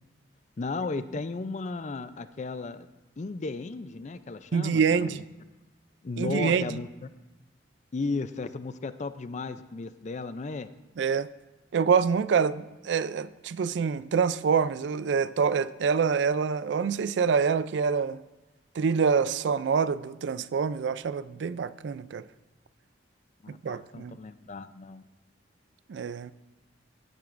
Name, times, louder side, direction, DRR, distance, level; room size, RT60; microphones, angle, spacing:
voice 1, 0.6-2.9 3.2-5.2 6.0-6.9 7.9-10.7 23.4-25.0, left 3 dB, 40° left, 0.4 m, -35 dB
voice 2, 4.5-5.2 6.2-6.8 11.0-11.3 11.7-18.2 18.8-22.2 23.5-24.2 25.9-26.3, right 6 dB, 70° right, 0.3 m, -26 dB
15.5 x 9.2 x 2.5 m
head